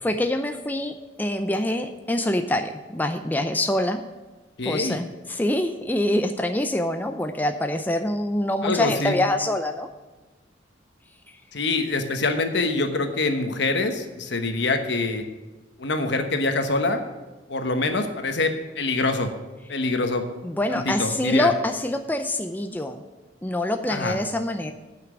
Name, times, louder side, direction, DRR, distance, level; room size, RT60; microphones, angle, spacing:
voice 1, 0.0-4.0 4.6-9.9 20.4-23.0 23.4-24.7, left 1 dB, 10° left, 6 dB, 0.5 m, -25 dB
voice 2, 4.6-5.0 8.6-9.2 11.5-15.2 15.8-17.0 17.5-19.3 19.7-20.2 20.7-21.5 23.9-24.2, left 3 dB, 65° left, 6 dB, 1.2 m, -25 dB
9.4 x 6.0 x 8.1 m, 1.2 s
head